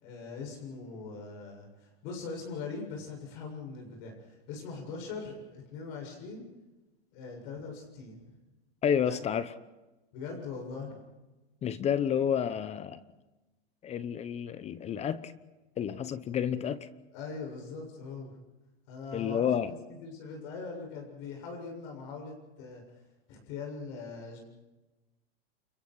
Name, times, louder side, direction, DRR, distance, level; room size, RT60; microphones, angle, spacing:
voice 1, 0.0-6.4 7.1-8.2 9.0-9.2 10.1-11.0 17.1-18.3 18.9-23.0 23.3-24.4, left 4 dB, 50° left, 2 dB, 7.4 m, -41 dB
voice 2, 8.8-9.5 11.6-13.0 13.8-15.3 15.8-16.9 19.1-19.7, left 8 dB, 20° left, 15 dB, 0.9 m, -30 dB
29.0 x 23.5 x 4.8 m, 1.1 s
supercardioid pair, 140°, 31 cm